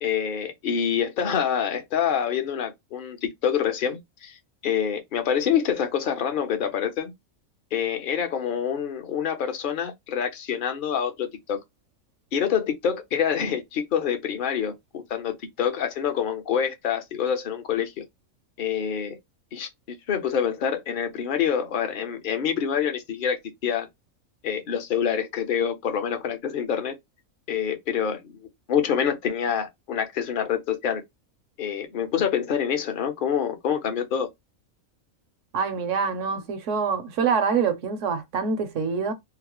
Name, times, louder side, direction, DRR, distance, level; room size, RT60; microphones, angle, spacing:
voice 1, 0.0-4.4 4.6-7.1 7.7-11.6 12.3-18.0 18.6-19.2 19.5-23.9 24.4-26.9 27.5-28.4 28.7-31.0 31.6-34.3, left 8 dB, 50° left, 0.7 m, -26 dB
voice 2, 35.5-39.1, right 6 dB, 70° right, 0.9 m, -25 dB
3.8 x 2.0 x 2.9 m
omnidirectional pair, 1.4 m